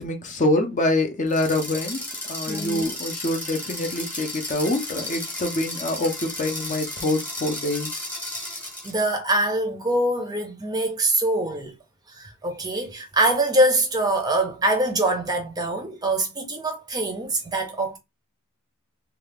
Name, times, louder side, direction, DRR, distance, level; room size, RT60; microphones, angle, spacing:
voice 1, 0.0-2.0 2.3-7.9, left 2 dB, 35° left, 0.6 m, -25 dB
sound 1, 1.3-9.1, left 1 dB, 10° left, 1.0 m, -34 dB
voice 2, 2.5-2.9 8.8-11.7 12.1-18.0, right 1 dB, 20° right, 0.6 m, -24 dB
2.7 x 2.3 x 3.4 m
head